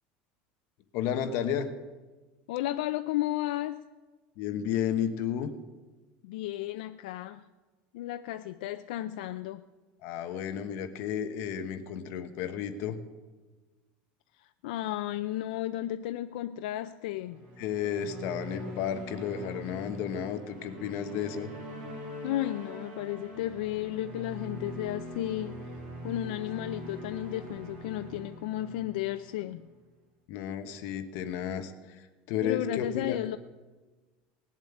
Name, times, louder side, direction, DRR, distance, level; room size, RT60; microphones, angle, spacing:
voice 1, 0.9-1.7 4.4-5.5 10.0-13.0 17.6-21.5 30.3-33.2, left 9 dB, 55° left, 1.2 m, -32 dB
voice 2, 2.5-3.8 6.2-7.4 7.9-9.6 14.4-17.5 22.2-25.6 26.0-29.7 32.4-33.4, left 14 dB, 85° left, 0.5 m, -33 dB
sound 1, 17.3-29.7, equal, 35° right, 6.6 m, -43 dB
19.0 x 7.5 x 9.9 m
cardioid pair, 160°, 4 cm